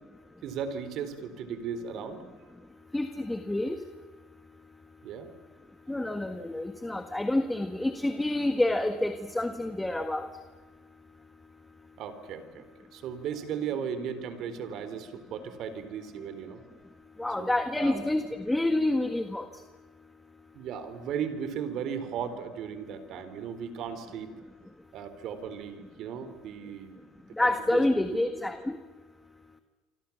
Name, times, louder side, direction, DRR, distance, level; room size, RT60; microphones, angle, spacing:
voice 1, 0.4-2.2 5.0-5.3 12.0-12.7 12.9-16.6 17.4-18.1 20.5-24.3 24.9-28.2, right 7 dB, 60° right, 11 dB, 4.0 m, -36 dB
voice 2, 2.9-3.7 5.9-10.3 17.2-19.4 27.4-28.8, left 1 dB, 10° left, 7 dB, 1.6 m, -28 dB
28.0 x 25.5 x 7.3 m, 1.4 s
supercardioid pair, 110°, 0 cm